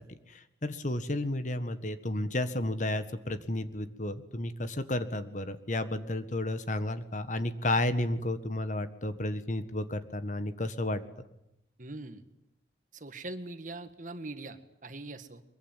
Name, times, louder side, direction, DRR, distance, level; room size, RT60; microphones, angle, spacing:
voice 1, 0.0-11.0, left 1 dB, 45° left, 11 dB, 1.6 m, -32 dB
voice 2, 11.8-12.2 12.9-15.4, right 2 dB, 45° right, 10 dB, 1.8 m, -42 dB
23.5 x 22.5 x 9.2 m, 0.85 s
head